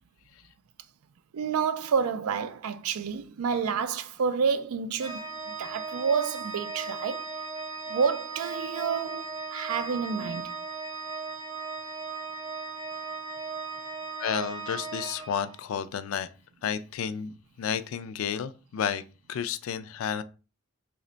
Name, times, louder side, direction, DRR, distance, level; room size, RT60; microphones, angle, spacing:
voice 1, 1.3-5.2 5.5-7.2 7.9-10.5, right 6 dB, 80° right, 0.4 m, -29 dB
Organ, 5.0-15.9, right 4 dB, 25° right, 0.5 m, -37 dB
voice 2, 14.2-16.3 16.6-19.0 19.3-20.2, left 7 dB, 70° left, 0.3 m, -31 dB
3.3 x 2.1 x 3.8 m
head